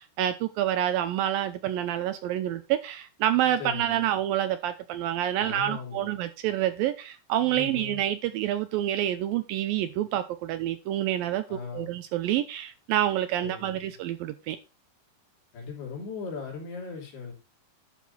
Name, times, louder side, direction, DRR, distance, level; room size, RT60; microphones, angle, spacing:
voice 1, 0.2-14.6, right 12 dB, 85° right, 2.1 m, -28 dB
voice 2, 3.6-4.2 5.4-6.2 7.5-8.0 11.5-12.0 13.4-13.9 15.5-17.3, left 5 dB, 70° left, 5.0 m, -38 dB
12.0 x 5.8 x 4.1 m
omnidirectional pair, 4.8 m